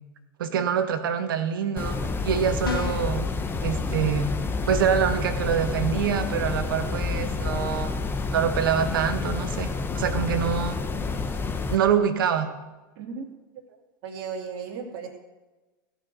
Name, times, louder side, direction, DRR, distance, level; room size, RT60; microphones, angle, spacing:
voice 1, 0.4-2.0 2.2-3.3 3.6-4.3 4.7-7.9 8.3-9.7 9.9-10.8 11.7-12.5, right 8 dB, 75° right, 8 dB, 1.5 m, -25 dB
sound 1, 1.8-11.8, left 4 dB, 20° left, 1.1 m, -29 dB
sound 2, 2.6-3.2, left 6 dB, 90° left, 1.2 m, -31 dB
voice 2, 12.9-13.3 14.0-15.1, right 5 dB, 55° right, 0 dB, 2.9 m, -35 dB
16.5 x 6.0 x 6.8 m, 1.2 s
hypercardioid pair, 95°, 11 cm